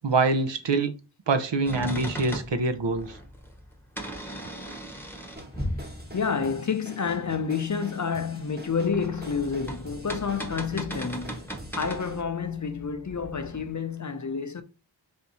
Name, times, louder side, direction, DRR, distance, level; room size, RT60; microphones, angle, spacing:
voice 1, 0.0-0.9 1.3-3.2, right 3 dB, 70° right, 0.7 m, -25 dB
sound 1, 1.7-6.6 8.6-13.7, equal, 5° left, 0.9 m, -38 dB
sound 2, 5.4-12.2, equal, 20° right, 1.0 m, -45 dB
voice 2, 6.1-14.6, left 6 dB, 40° left, 0.5 m, -29 dB
3.5 x 2.7 x 4.1 m
wide cardioid pair, 40°, 45 cm